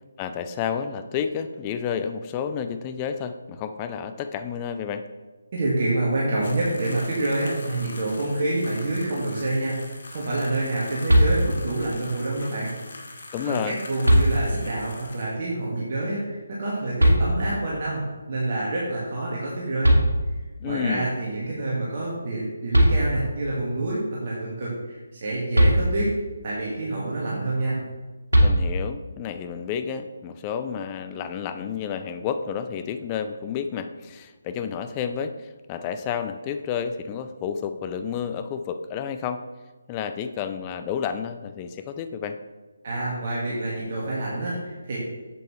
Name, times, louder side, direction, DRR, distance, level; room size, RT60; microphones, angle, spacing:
voice 1, 0.2-5.0 13.3-13.8 20.6-21.1 28.4-39.4 39.9-42.4, left 7 dB, 20° left, 9 dB, 0.4 m, -30 dB
voice 2, 5.5-12.7 13.4-20.0 20.6-26.1 26.4-27.8 42.8-45.0, right 2 dB, 40° right, -6 dB, 1.8 m, -27 dB
sound 1, 6.4-15.4, left 2 dB, 50° left, 1.2 m, -43 dB
sound 2, 11.1-11.8 13.3-13.4 14.0-14.8 17.0-17.7 19.5-19.6 19.8-20.7 22.4-22.5 22.7-23.5 25.5-26.4 28.3-29.1, equal, 80° right, 2.0 m, -20 dB
7.7 x 7.6 x 3.2 m, 1.2 s
figure-of-eight pair, 145°, 0 cm